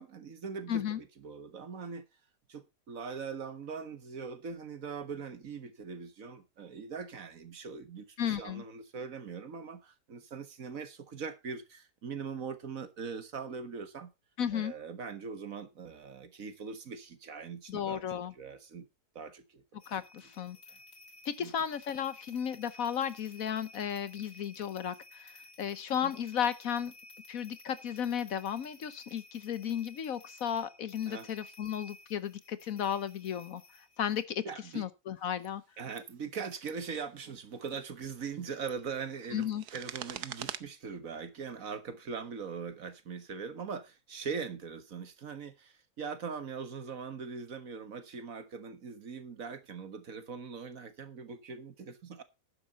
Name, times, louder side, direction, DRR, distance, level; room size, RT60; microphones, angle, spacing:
voice 1, 0.0-2.1 2.5-14.1 14.5-18.0 18.4-18.9 19.2-19.6 21.4-21.5 26.0-26.1 31.1-31.3 34.5-34.8 35.8-52.2, right 5 dB, 60° right, 1.7 m, -41 dB
voice 2, 0.7-1.0 8.2-8.6 14.4-14.7 17.7-18.3 19.9-20.6 21.2-26.9 27.3-33.6 34.0-34.4 34.7-35.6 39.3-39.6, left 9 dB, 65° left, 1.3 m, -34 dB
sound 1, 19.8-34.2, left 2 dB, 45° left, 2.0 m, -55 dB
sound 2, 35.3-35.5 35.9-36.2 36.5-36.7 37.5-37.8 38.4-40.6, right 10 dB, 85° right, 1.4 m, -44 dB
11.5 x 9.8 x 4.1 m
omnidirectional pair, 1.7 m